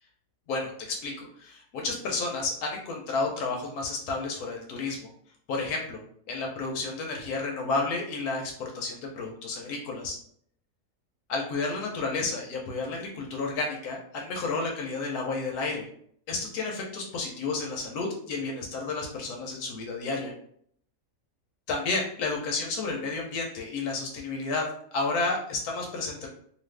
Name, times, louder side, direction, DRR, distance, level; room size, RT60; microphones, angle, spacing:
voice 1, 0.5-5.1 5.5-6.0 6.3-10.1 11.3-15.9 16.3-20.3 21.7-26.3, left 3 dB, 80° left, 0 dB, 1.2 m, -31 dB
2.6 x 2.5 x 3.3 m, 0.63 s
omnidirectional pair, 1.6 m